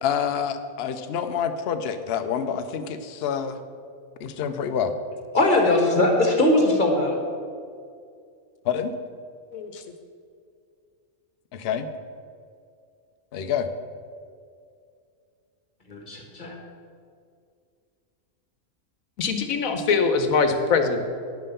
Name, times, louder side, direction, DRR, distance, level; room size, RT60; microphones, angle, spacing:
voice 1, 0.0-3.6 4.2-4.9 8.6-8.9 11.5-11.9 13.3-13.7, left 8 dB, 55° left, 8 dB, 0.8 m, -27 dB
voice 2, 5.3-7.2 15.9-16.5, left 2 dB, 35° left, 1 dB, 1.6 m, -20 dB
voice 3, 9.5-9.8 19.2-21.0, left 5 dB, 80° left, 7 dB, 1.4 m, -23 dB
10.0 x 5.7 x 6.7 m, 2.3 s
omnidirectional pair, 1.4 m